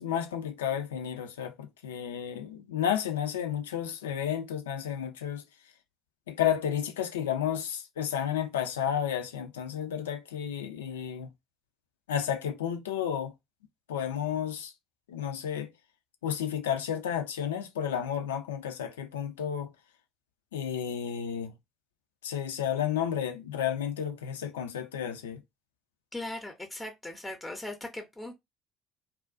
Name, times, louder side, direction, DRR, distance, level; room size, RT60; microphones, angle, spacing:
voice 1, 0.0-5.4 6.3-11.3 12.1-13.3 13.9-14.7 15.1-15.7 16.2-19.7 20.5-21.5 22.2-25.4, left 9 dB, 80° left, 0.4 m, -32 dB
voice 2, 26.1-28.4, left 1 dB, 10° left, 0.6 m, -39 dB
2.4 x 2.1 x 2.4 m
figure-of-eight pair, 55°, 0 cm